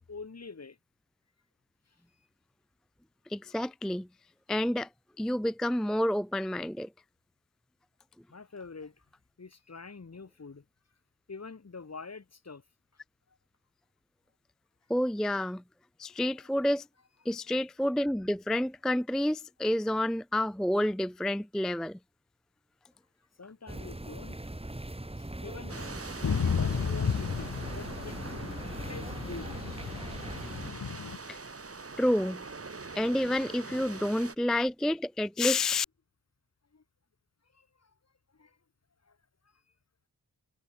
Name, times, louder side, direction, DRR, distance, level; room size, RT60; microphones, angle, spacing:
voice 1, 0.1-0.8 1.9-2.0 8.3-9.1 9.4-10.6 11.3-12.6 13.3-13.4 16.3-16.5 17.5-17.6 23.4-24.5 25.2-28.2 28.9-29.6 29.9-30.0 33.9-34.3 36.7-36.8 37.5-37.9 38.3-38.6 39.0-39.2 39.4-39.6, left 4 dB, 50° left, 4.2 m, -46 dB
voice 2, 3.3-4.1 4.5-4.9 5.2-6.9 14.9-15.6 16.0-16.9 17.3-22.0 31.3-31.4 32.0-32.4 33.0-35.9, left 1 dB, ahead, 0.3 m, -29 dB
sound 1, 23.7-30.7, right 1 dB, 15° right, 6.6 m, -41 dB
sound 2, 25.7-34.4, right 4 dB, 45° right, 4.8 m, -44 dB
Thunder / Rain, 26.2-31.2, left 6 dB, 75° left, 2.7 m, -33 dB
cardioid pair, 60°, 33 cm